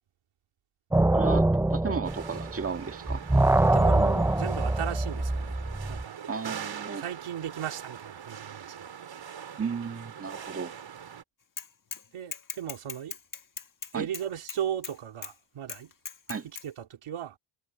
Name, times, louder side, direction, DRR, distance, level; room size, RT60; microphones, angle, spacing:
sound 1, 0.9-2.8 3.1-6.0, right 2 dB, 5° right, 0.4 m, -24 dB
voice 1, 1.1-3.2 6.3-7.0 9.6-10.8 13.9-14.1 16.3-16.5, right 5 dB, 25° right, 1.7 m, -34 dB
sound 2, 2.0-11.2, right 8 dB, 60° right, 5.1 m, -42 dB
voice 2, 3.6-5.6 5.9-6.2 6.9-8.9 12.1-13.2 13.9-15.9 16.4-17.4, right 10 dB, 80° right, 2.7 m, -36 dB
Bicycle / Mechanisms, 11.6-12.0 12.3-14.9 15.2-15.3 15.7-16.7, left 6 dB, 40° left, 1.8 m, -39 dB
wide cardioid pair, 125°, 49 cm